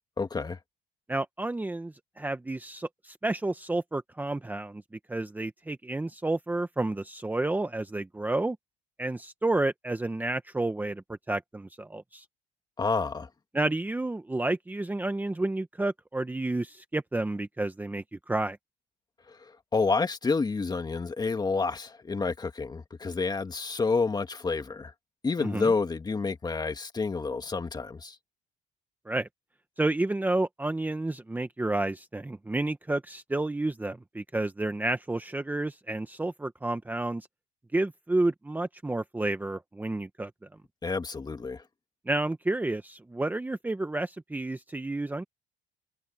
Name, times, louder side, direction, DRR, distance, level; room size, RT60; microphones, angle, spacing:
voice 1, 0.2-0.6 12.8-13.3 19.3-24.9 25.2-28.2 40.8-41.6, left 4 dB, 25° left, 2.4 m, -29 dB
voice 2, 1.1-4.8 5.1-8.6 9.0-12.2 13.5-18.6 25.4-25.7 29.1-29.3 29.8-37.3 37.7-40.3 42.1-45.2, right 2 dB, 10° right, 1.1 m, -30 dB
cardioid pair, 110°, 17 cm